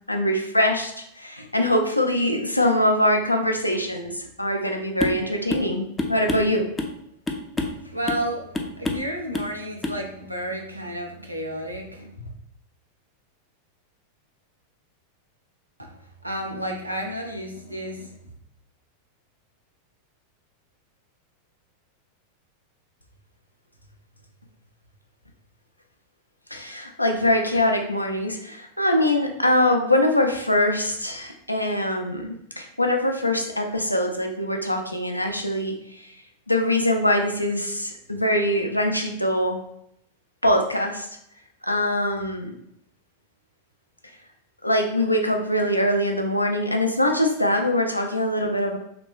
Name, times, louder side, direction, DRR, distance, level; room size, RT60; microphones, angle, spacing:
voice 1, 0.1-6.6 26.5-36.1 36.5-39.6 40.4-41.1 41.6-42.5 44.6-48.8, left 1 dB, 85° left, 3 dB, 0.3 m, -23 dB
sound 1, 5.0-5.2 5.5-5.7 6.0-7.0 7.3-7.8 8.1-8.3 8.5-9.1 9.3-9.5 9.8-10.0, left 2 dB, 10° left, 0.3 m, -28 dB
voice 2, 7.6-12.3 15.8-15.9 16.2-18.1, right 1 dB, 85° right, 1 dB, 0.4 m, -32 dB
2.8 x 2.1 x 2.3 m, 0.75 s
figure-of-eight pair, 90°, 0 cm